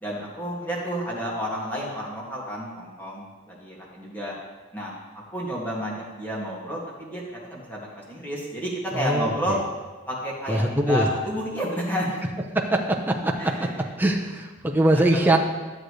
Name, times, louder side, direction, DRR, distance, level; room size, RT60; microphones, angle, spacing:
voice 1, 0.0-4.4 4.7-9.6 10.1-12.2 13.4-13.7 15.1-15.3, equal, 10° left, -5 dB, 2.2 m, -31 dB
voice 2, 8.9-9.6 10.5-11.1 12.5-13.7 14.0-15.4, right 1 dB, 10° right, 1 dB, 0.7 m, -22 dB
12.5 x 7.8 x 3.3 m, 1.3 s
head